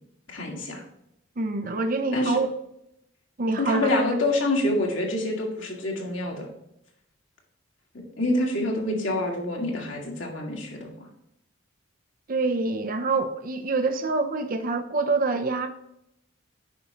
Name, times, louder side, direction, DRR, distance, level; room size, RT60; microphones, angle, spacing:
voice 1, 0.3-0.8 2.1-2.4 3.6-6.5 8.2-10.9, left 1 dB, 65° left, -1 dB, 2.1 m, -26 dB
voice 2, 1.4-2.5 3.4-3.9 12.3-15.7, right 3 dB, 45° right, 6 dB, 0.6 m, -26 dB
8.5 x 5.6 x 2.9 m, 0.80 s
head